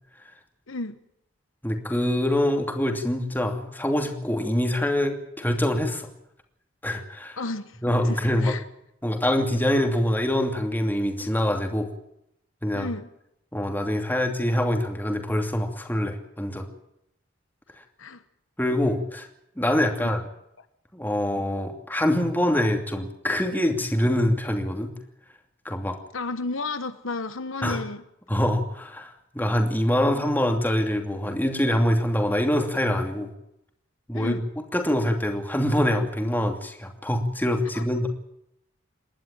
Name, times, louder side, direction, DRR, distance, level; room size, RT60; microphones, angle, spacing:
voice 1, 1.6-6.1 6.8-7.4 7.8-8.5 9.0-11.9 12.6-12.9 13.5-16.7 18.6-19.3 19.6-20.2 20.9-24.9 25.6-26.0 27.6-27.8 28.3-29.1 29.3-33.3 34.1-34.4 34.7-38.1, left 1 dB, 10° left, 4 dB, 2.7 m, -24 dB
voice 2, 7.4-7.8 8.0-8.6 12.7-13.1 18.0-18.2 20.0-20.1 26.1-28.0 34.1-34.4 37.7-37.9, left 3 dB, 70° left, 11 dB, 1.2 m, -32 dB
28.0 x 12.0 x 9.0 m, 0.78 s
head